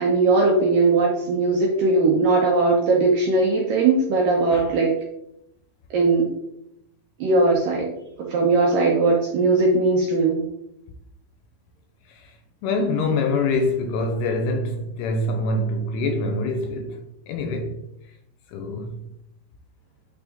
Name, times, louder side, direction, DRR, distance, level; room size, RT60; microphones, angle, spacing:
voice 1, 0.0-4.9 5.9-6.3 7.2-7.9 8.2-10.5, right 3 dB, 75° right, 2.0 m, -19 dB
voice 2, 12.6-17.0 17.3-17.8 18.5-19.0, left 2 dB, 80° left, 2.6 m, -25 dB
9.0 x 4.1 x 3.6 m
omnidirectional pair, 5.1 m